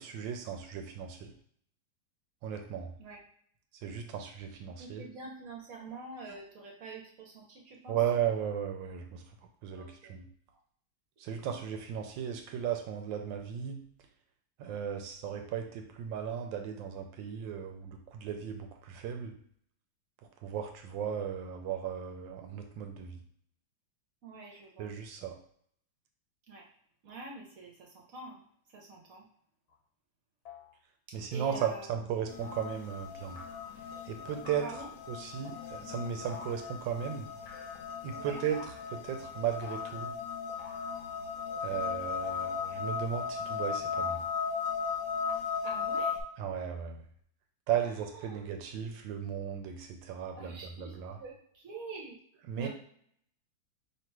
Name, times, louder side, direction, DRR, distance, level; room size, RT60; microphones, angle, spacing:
voice 1, 0.0-1.3 2.4-2.9 3.8-5.0 7.9-9.2 9.6-10.2 11.2-13.8 14.6-19.3 20.4-23.2 24.8-25.4 31.1-33.4 34.1-34.7 35.1-37.3 38.0-40.1 41.6-44.2 46.4-47.0 47.7-51.2 52.5-52.7, right 8 dB, 75° right, 5 dB, 1.2 m, -36 dB
voice 2, 4.8-8.0 9.7-10.1 24.2-24.9 26.5-26.6 27.0-28.4 28.7-29.3 31.3-31.9 34.6-34.9 38.1-38.4 45.6-46.2 48.1-48.4 50.4-52.2 52.6-52.7, right 3 dB, 55° right, -1 dB, 1.0 m, -46 dB
sound 1, 29.7-29.8 30.5-30.7 31.5-31.8 32.4-32.8 33.4-33.8 34.5-34.8 35.5-35.7 36.3-36.8 37.5-38.1 38.5-39.0 39.6-40.1 40.6-41.3 42.2-42.9 43.9-44.6 45.3-45.4, left 5 dB, 85° left, 1.6 m, -50 dB
sound 2, 32.3-46.2, left 6 dB, 70° left, 1.0 m, -37 dB
3.0 x 2.9 x 4.5 m, 0.63 s
omnidirectional pair, 2.2 m